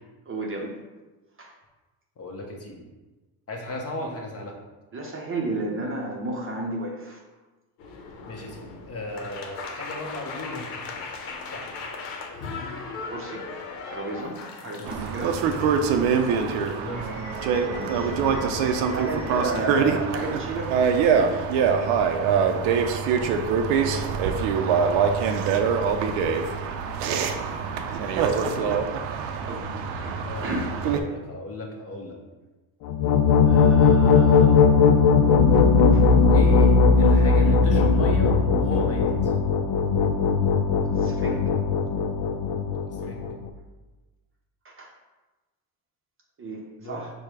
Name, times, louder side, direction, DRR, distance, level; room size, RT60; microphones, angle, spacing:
voice 1, 0.3-0.7 1.4-1.5 4.9-7.2 13.1-13.4 13.9-15.3 17.6-18.2 18.7-21.5 24.8-25.1 29.4-29.7 30.0-30.7 35.9-36.0 41.0-41.4 44.6-44.9 46.4-47.1, right 2 dB, 30° right, 0 dB, 0.7 m, -33 dB
voice 2, 2.2-2.9 3.5-4.6 8.3-11.2 11.5-11.7 14.6-15.1 16.2-17.3 23.8-24.2 28.0-28.7 30.2-32.2 33.5-34.7 36.3-39.3 42.8-43.3 46.8-47.0, left 1 dB, 30° left, 1 dB, 0.9 m, -36 dB
sound 1, 7.8-19.6, left 4 dB, 90° left, 0.8 m, -39 dB
sound 2, 14.9-31.0, right 6 dB, 75° right, 0.6 m, -24 dB
sound 3, 32.8-43.5, left 5 dB, 60° left, 0.5 m, -19 dB
4.6 x 2.2 x 4.7 m, 1.2 s
supercardioid pair, 100°, 46 cm